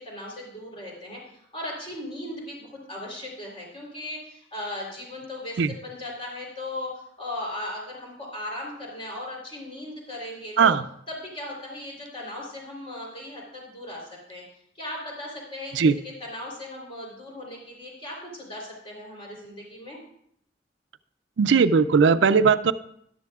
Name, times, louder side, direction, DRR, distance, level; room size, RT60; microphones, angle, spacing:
voice 1, 0.0-10.8 11.1-14.4 14.8-20.0, left 1 dB, 30° left, -2 dB, 3.4 m, -37 dB
voice 2, 21.4-22.7, right 5 dB, 80° right, 14 dB, 0.4 m, -18 dB
13.5 x 11.5 x 2.4 m, 0.70 s
head